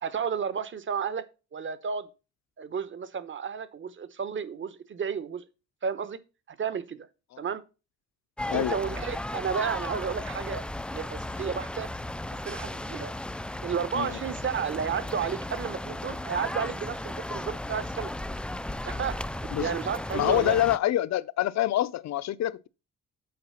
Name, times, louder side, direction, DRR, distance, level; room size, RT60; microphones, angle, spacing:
voice 1, 0.0-1.2 1.5-2.1 2.6-5.4 5.8-6.2 6.5-7.1 7.4-7.6 8.5-10.6 10.9-11.9 12.4-13.1 13.6-18.1 18.8-19.2 19.6-20.6, right 7 dB, 40° right, 1.0 m, -32 dB
sound 1, 8.4-20.8, left 1 dB, 5° left, 0.3 m, -35 dB
voice 2, 20.1-22.7, left 13 dB, 60° left, 0.6 m, -26 dB
7.8 x 4.7 x 5.7 m
cardioid pair, 90°, 30 cm